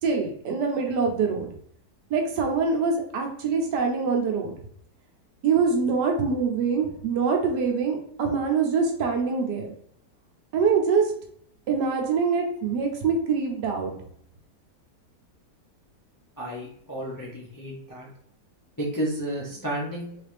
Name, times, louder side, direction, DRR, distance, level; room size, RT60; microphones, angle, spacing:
voice 1, 0.0-1.5 2.1-4.5 5.4-9.7 10.5-11.1 11.7-13.9, right 5 dB, 75° right, 2 dB, 1.4 m, -24 dB
voice 2, 16.4-18.1 18.8-20.2, right 1 dB, 20° left, -4 dB, 0.6 m, -32 dB
3.3 x 3.3 x 3.3 m, 0.66 s
omnidirectional pair, 1.8 m